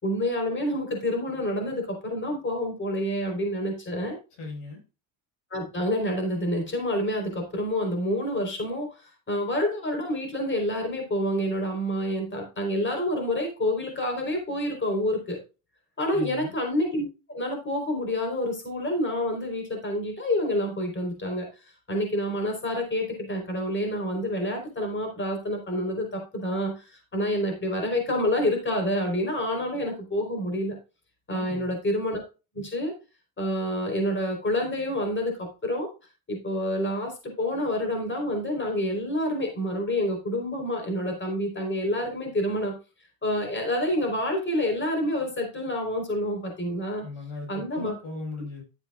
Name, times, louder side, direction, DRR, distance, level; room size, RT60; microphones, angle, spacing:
voice 1, 0.0-4.2 5.5-15.4 16.0-21.5 21.9-30.8 31.3-32.2 32.5-32.9 33.4-35.9 36.3-42.7 43.2-47.0 47.5-47.9, left 1 dB, 25° left, 3 dB, 4.2 m, -28 dB
voice 2, 4.4-4.8 16.1-16.5 31.3-31.8 47.0-48.6, left 3 dB, 80° left, 2 dB, 5.4 m, -38 dB
12.0 x 8.6 x 2.4 m, 0.30 s
supercardioid pair, 95°, 49 cm